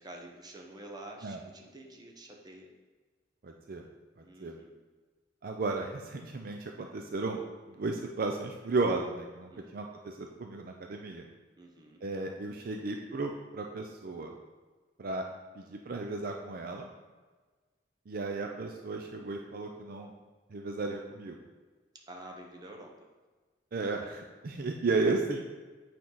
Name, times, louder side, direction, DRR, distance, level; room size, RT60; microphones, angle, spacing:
voice 1, 0.0-2.7 4.2-4.8 9.5-9.8 11.6-12.0 22.1-22.9, right 1 dB, 25° right, 1 dB, 0.9 m, -48 dB
voice 2, 3.4-3.8 4.4-4.6 5.4-7.4 7.7-11.2 12.0-14.3 15.0-15.3 15.6-16.9 18.1-20.1 20.5-21.4 23.7-25.5, right 3 dB, 55° right, 3 dB, 0.5 m, -34 dB
8.4 x 4.5 x 3.9 m, 1.4 s
head